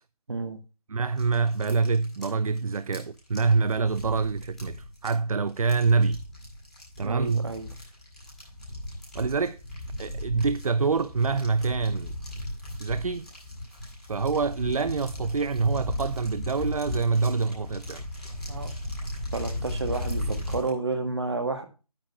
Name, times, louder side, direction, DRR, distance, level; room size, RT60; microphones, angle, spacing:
voice 1, 0.3-0.6 7.0-7.7 18.5-18.7 19.3-21.6, right 3 dB, 45° right, 1.7 m, -30 dB
voice 2, 0.9-4.8 5.0-6.2 7.0-7.5 9.1-9.6 10.0-12.1 12.8-13.3 14.1-18.3, right 4 dB, 65° right, 0.5 m, -26 dB
sound 1, 1.2-20.7, left 1 dB, ahead, 2.1 m, -36 dB
8.9 x 5.2 x 6.8 m
figure-of-eight pair, 175°, 20 cm